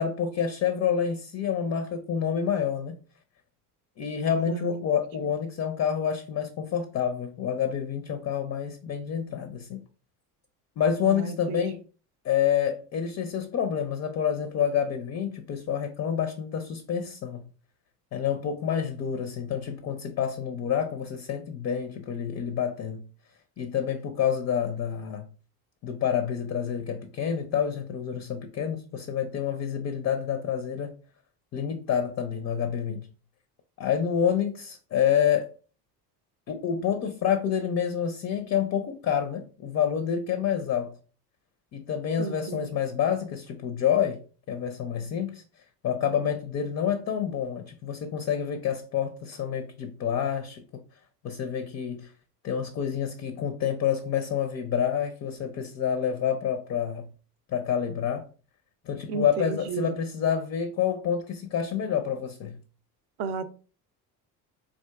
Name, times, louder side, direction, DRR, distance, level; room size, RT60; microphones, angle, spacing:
voice 1, 0.0-2.9 4.0-9.8 10.8-11.8 12.2-17.5 18.1-23.0 23.6-25.3 25.8-30.9 31.5-33.1 33.8-35.5 36.5-41.0 41.7-45.4 45.8-50.8 51.2-52.1 52.4-57.1 57.5-58.3 58.9-62.6, left 8 dB, 35° left, 0.4 m, -28 dB
voice 2, 4.5-4.8 11.0-11.6 42.2-42.7 59.1-59.9 63.2-63.5, right 6 dB, 60° right, 0.5 m, -33 dB
3.6 x 2.4 x 2.2 m
hypercardioid pair, 65°, 47 cm